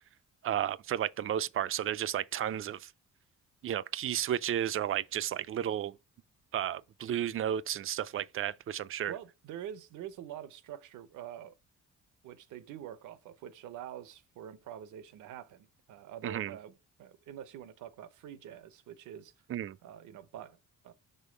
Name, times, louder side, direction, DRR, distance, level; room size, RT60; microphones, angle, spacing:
voice 1, 0.4-2.9 3.6-5.9 6.5-9.1 16.2-16.6 19.5-19.8, right 10 dB, 45° right, 0.4 m, -33 dB
voice 2, 9.1-11.5 12.2-19.3 19.8-20.6 20.8-20.9, right 10 dB, 80° right, 0.8 m, -46 dB
5.5 x 3.7 x 5.0 m
cardioid pair, 90°, 30 cm